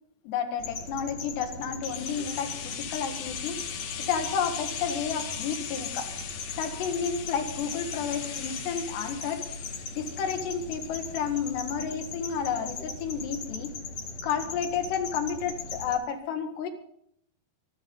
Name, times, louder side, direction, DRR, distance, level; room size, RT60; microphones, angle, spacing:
voice 1, 0.3-3.7 4.0-6.1 6.5-9.5 9.9-13.8 14.2-16.7, left 7 dB, 90° left, 5 dB, 3.9 m, -31 dB
sound 1, 0.6-16.0, left 4 dB, 55° left, 2.6 m, -39 dB
sound 2, 1.8-11.7 11.9-12.0, left 8 dB, 70° left, 3.2 m, -40 dB
24.5 x 11.5 x 3.9 m, 0.71 s
omnidirectional pair, 4.7 m